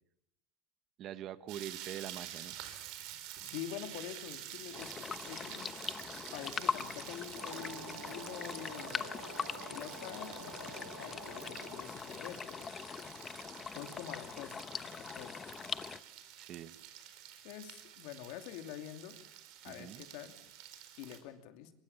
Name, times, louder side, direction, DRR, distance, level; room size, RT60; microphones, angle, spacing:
voice 1, 1.0-2.6 16.4-16.7 19.6-20.1, right 11 dB, 45° right, 13 dB, 1.3 m, -44 dB
sound 1, 1.5-21.2, right 11 dB, 65° right, 4.3 m, -49 dB
voice 2, 3.5-5.7 6.3-9.1 9.7-13.2 13.7-15.4 17.4-19.2 19.6-20.3 21.0-21.7, left 11 dB, 70° left, 7 dB, 2.7 m, -46 dB
sound 2, 4.7-16.0, left 6 dB, 25° left, 1.0 m, -42 dB
Wind instrument woodwind instrument, 7.3-12.0, right 7 dB, 90° right, 5.3 m, -50 dB
24.5 x 22.5 x 7.1 m, 0.77 s
supercardioid pair, 140°, 0 cm